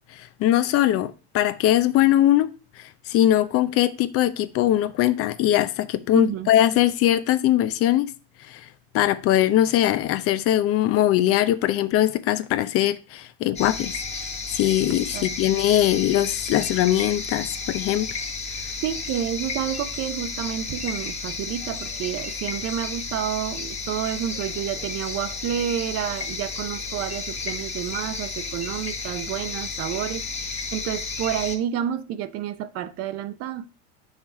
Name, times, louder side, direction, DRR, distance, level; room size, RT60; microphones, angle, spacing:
voice 1, 0.4-2.5 3.1-8.1 8.5-8.6 8.9-14.2 14.5-18.1, left 13 dB, 45° left, 0.6 m, -21 dB
voice 2, 6.1-6.5 15.1-15.3 18.8-33.7, right 10 dB, 50° right, 0.7 m, -29 dB
sound 1, 13.6-31.6, left 4 dB, 20° left, 1.1 m, -32 dB
5.7 x 4.7 x 4.2 m
supercardioid pair, 110°, 32 cm